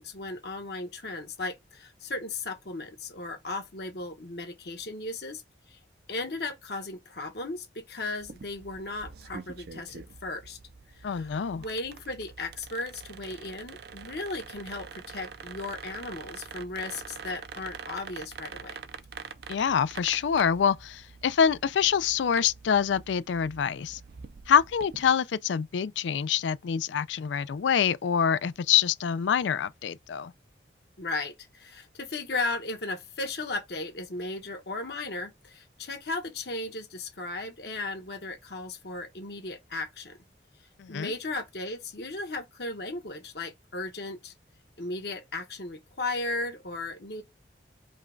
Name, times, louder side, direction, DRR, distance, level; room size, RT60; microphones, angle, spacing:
voice 1, 0.0-5.4 5.7-5.8 6.1-10.6 10.9-18.8 31.0-40.2 40.9-44.3 44.8-47.2, left 2 dB, 60° left, 1.0 m, -36 dB
sound 1, 8.2-25.1, right 5 dB, 60° right, 0.4 m, -45 dB
voice 2, 11.0-11.6 19.5-24.0 24.5-30.3 40.8-41.1, left 7 dB, 80° left, 0.4 m, -26 dB
5.2 x 2.3 x 3.8 m
head